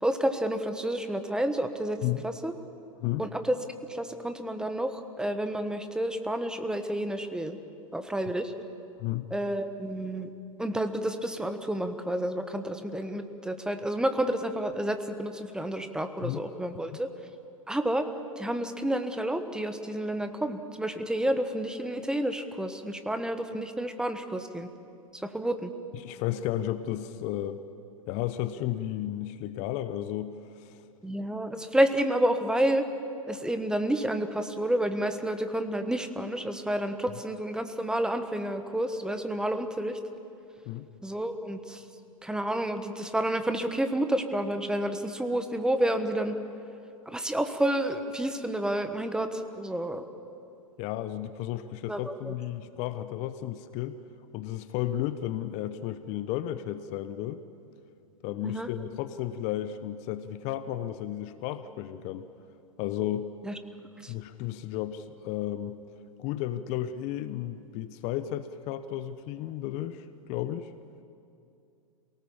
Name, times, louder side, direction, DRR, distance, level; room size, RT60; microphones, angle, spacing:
voice 1, 0.0-2.5 3.2-3.6 3.9-7.6 7.9-8.5 9.3-10.3 10.6-17.1 17.7-18.1 18.4-24.7 25.1-25.7 31.0-32.8 33.3-40.0 41.0-41.8 42.2-46.4 47.0-50.0 51.9-52.3 58.4-58.7 63.4-63.6 64.0-64.1, right 1 dB, 5° right, 8 dB, 1.2 m, -30 dB
voice 2, 25.9-27.6 28.1-30.8 40.7-40.9 50.8-54.0 54.3-57.4 58.2-62.3 62.8-63.3 64.1-65.8 66.2-70.7, left 12 dB, 40° left, 12 dB, 0.9 m, -33 dB
28.0 x 18.5 x 7.3 m, 2.6 s
hypercardioid pair, 110°, 18 cm